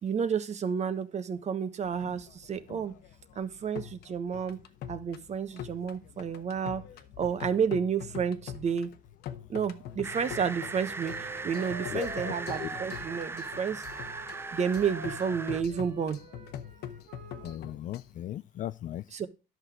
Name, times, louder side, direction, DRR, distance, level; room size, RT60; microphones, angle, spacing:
voice 1, 0.0-2.9 3.4-4.6 4.9-6.8 7.2-8.9 9.5-13.8 14.5-16.2 19.1-19.3, right 7 dB, 40° right, 1.2 m, -31 dB
sound 1, 1.8-18.1, left 9 dB, 75° left, 1.2 m, -44 dB
sound 2, 10.0-15.6, right 3 dB, 15° right, 0.4 m, -39 dB
Wind instrument woodwind instrument, 10.1-17.6, right 4 dB, 65° right, 2.0 m, -47 dB
voice 2, 11.9-12.7 17.4-19.0, left 12 dB, 50° left, 0.4 m, -37 dB
11.0 x 6.1 x 4.8 m
cardioid pair, 110°, 17 cm